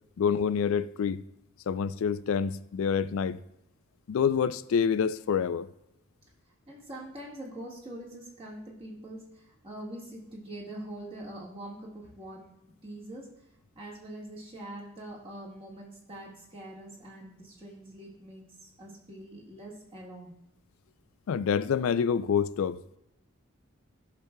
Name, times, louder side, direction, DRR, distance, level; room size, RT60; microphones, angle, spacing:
voice 1, 0.2-1.2 1.7-3.4 4.1-5.7 21.3-22.8, left 7 dB, 70° left, 0.3 m, -27 dB
voice 2, 6.7-12.5 12.8-13.3 13.7-20.3, right 1 dB, 25° right, 1.6 m, -44 dB
14.5 x 5.9 x 2.2 m
head